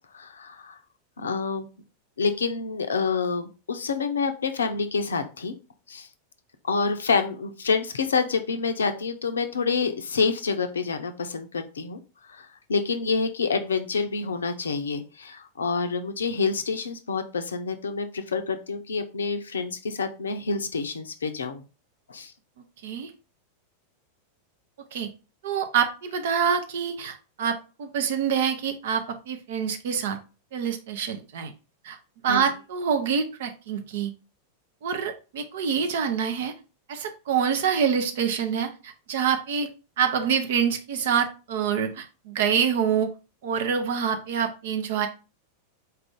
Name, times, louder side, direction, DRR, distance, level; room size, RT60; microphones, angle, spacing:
voice 1, 0.1-0.8 1.2-1.7 2.2-5.5 5.9-6.1 6.6-12.0 12.3-21.6 22.1-22.3 32.3-32.4, left 4 dB, 70° left, 8 dB, 0.5 m, -27 dB
voice 2, 25.4-30.2 30.5-31.5 31.8-32.0 32.2-34.1 34.8-36.5 36.9-39.7 40.0-43.1 43.4-45.1, right 7 dB, 55° right, 6 dB, 0.6 m, -26 dB
4.1 x 2.5 x 3.5 m, 0.33 s
figure-of-eight pair, 90°, 0 cm